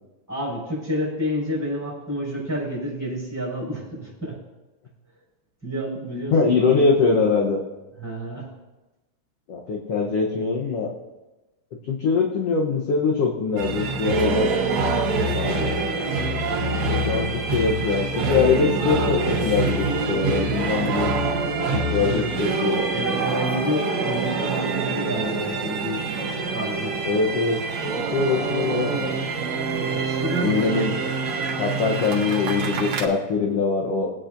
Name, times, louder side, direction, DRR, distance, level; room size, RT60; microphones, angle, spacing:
voice 1, 0.3-4.4 5.6-6.9 8.0-8.5 22.0-22.3 22.9-26.0 26.5-27.0 29.8-30.6, equal, 5° right, -5 dB, 4.7 m, -29 dB
voice 2, 6.3-7.6 9.5-10.9 11.8-14.5 15.1-15.8 16.8-21.2 21.7-22.9 27.0-29.1 30.4-30.9 31.6-34.1, left 4 dB, 65° left, -1 dB, 1.7 m, -23 dB
sound 1, 13.6-33.1, right 3 dB, 65° right, 2.3 m, -25 dB
22.5 x 9.2 x 2.6 m, 1.1 s
omnidirectional pair, 3.6 m